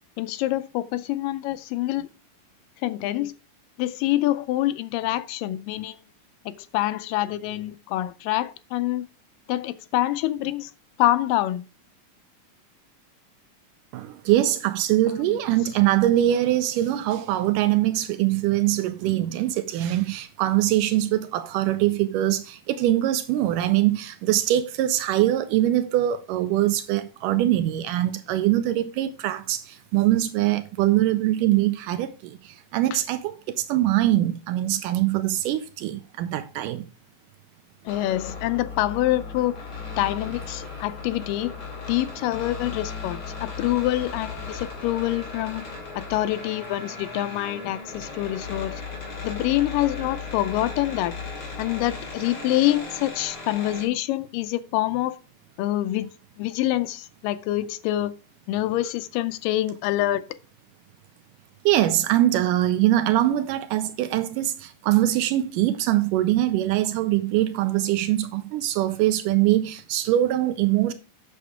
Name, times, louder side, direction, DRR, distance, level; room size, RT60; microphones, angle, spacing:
voice 1, 0.2-2.1 2.8-3.4 3.8-5.9 6.5-9.1 9.5-10.7 11.0-11.7 15.3-15.4 37.9-39.6 40.0-41.5 41.9-45.7 46.0-48.8 49.2-51.2 51.6-55.2 55.6-56.1 56.4-58.1 58.5-60.3, left 15 dB, 85° left, 2.3 m, -26 dB
voice 2, 13.9-36.8 61.7-70.9, right 14 dB, 85° right, 2.2 m, -23 dB
sound 1, 37.9-53.9, left 4 dB, 50° left, 4.3 m, -36 dB
8.2 x 6.8 x 4.9 m
omnidirectional pair, 3.8 m